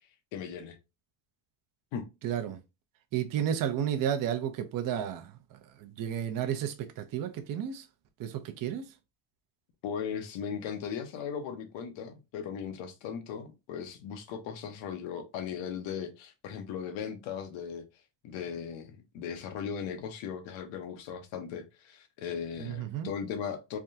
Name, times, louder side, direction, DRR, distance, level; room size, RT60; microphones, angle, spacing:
voice 1, 0.3-0.8 1.9-2.1 9.8-17.9 18.2-23.8, left 7 dB, 80° left, 0.9 m, -38 dB
voice 2, 2.2-2.6 3.1-7.9 8.2-8.9 22.6-23.1, right 9 dB, 45° right, 0.6 m, -32 dB
3.5 x 2.2 x 2.7 m
cardioid pair, 100°, 45 cm